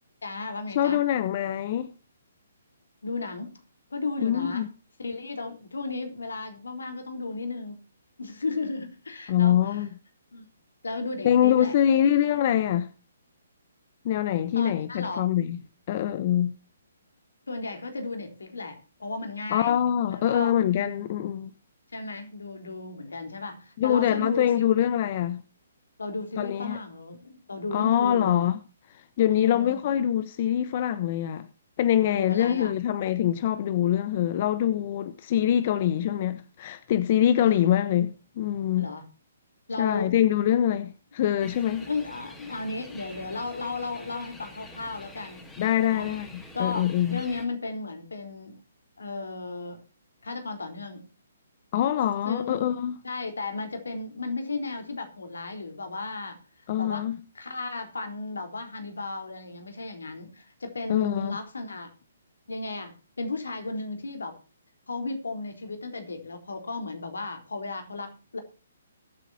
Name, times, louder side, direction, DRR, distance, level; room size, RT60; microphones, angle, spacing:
voice 1, 0.2-1.0 3.0-3.5 3.9-4.7 5.0-7.8 8.2-9.9 10.3-10.4 10.8-11.7 14.5-15.2 17.5-19.8 20.1-21.2 21.9-24.6 26.0-28.4 29.3-29.9 32.0-32.7 38.8-39.0 39.7-40.2 41.8-45.5 45.8-46.1 46.5-48.6 49.0-49.8 50.2-51.0 52.2-52.7 53.0-57.0 57.3-61.9 62.5-64.4 64.9-68.4, left 3 dB, 85° left, 3.9 m, -34 dB
voice 2, 0.7-1.9 4.2-4.7 9.3-9.9 11.2-12.9 14.0-15.6 15.9-16.5 19.5-21.5 23.8-25.4 26.4-26.8 27.7-28.6 28.9-31.5 31.8-38.9 39.8-41.9 45.6-46.3 46.6-47.2 51.7-53.0 56.7-57.2 60.9-61.4, left 10 dB, 45° left, 1.0 m, -24 dB
sound 1, 41.4-47.5, left 1 dB, 10° left, 3.8 m, -47 dB
22.0 x 8.3 x 2.8 m
hypercardioid pair, 140°, 0 cm